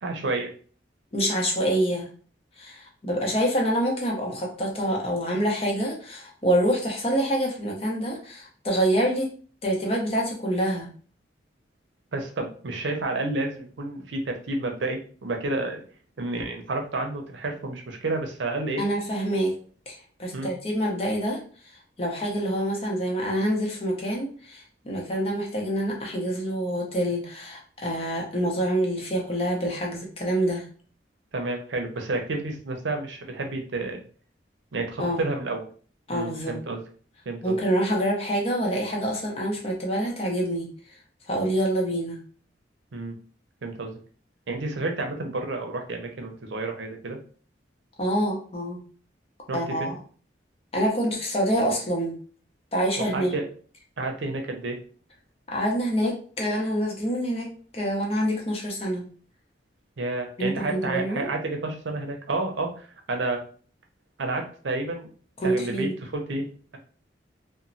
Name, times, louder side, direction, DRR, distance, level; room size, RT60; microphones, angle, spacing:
voice 1, 0.0-0.5 12.1-15.8 16.2-18.8 20.3-20.5 31.3-34.0 34.7-35.7 36.1-36.8 37.3-37.6 42.9-43.2 43.6-44.0 44.5-47.2 49.5-49.9 53.0-53.4 54.0-54.8 60.0-62.7 63.1-63.4 64.2-65.1 65.4-66.5, right 2 dB, 85° right, 3 dB, 0.6 m, -30 dB
voice 2, 1.1-2.1 2.6-9.3 9.6-10.9 18.8-19.5 19.9-21.4 22.0-30.6 35.0-35.3 36.1-36.6 37.4-40.7 41.3-42.2 48.0-48.8 49.5-49.9 50.7-52.2 52.7-53.3 55.5-59.0 60.4-61.3 65.4-65.9, equal, 35° left, -1 dB, 0.7 m, -26 dB
3.0 x 2.1 x 2.6 m, 0.42 s
head